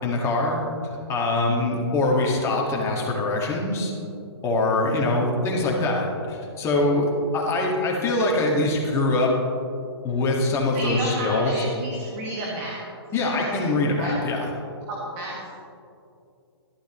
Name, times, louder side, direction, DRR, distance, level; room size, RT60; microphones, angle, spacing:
voice 1, 0.0-0.6 1.1-3.9 4.4-9.3 10.0-11.6 13.1-14.5, left 2 dB, 20° left, -2 dB, 1.7 m, -23 dB
voice 2, 10.7-12.8 13.2-13.6 14.0-14.1 14.9-15.6, right 2 dB, 35° right, -3 dB, 1.6 m, -32 dB
12.0 x 11.5 x 3.0 m, 2.5 s
hypercardioid pair, 140°, 14 cm